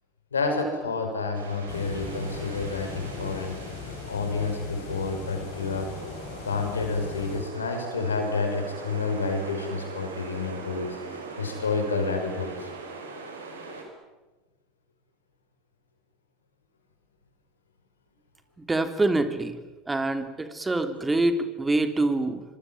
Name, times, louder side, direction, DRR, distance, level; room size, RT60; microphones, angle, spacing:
voice 1, 0.3-3.6 4.1-5.9 6.5-12.7, left 4 dB, 90° left, 5 dB, 5.7 m, -29 dB
sound 1, 1.3-13.8, right 3 dB, 85° right, 5.9 m, -41 dB
sound 2, 1.7-7.4, left 7 dB, 60° left, 5.8 m, -40 dB
voice 2, 18.7-19.6 19.9-22.4, right 2 dB, 15° right, 8 dB, 3.3 m, -25 dB
25.5 x 24.5 x 9.1 m, 1.2 s
hypercardioid pair, 75°, 0 cm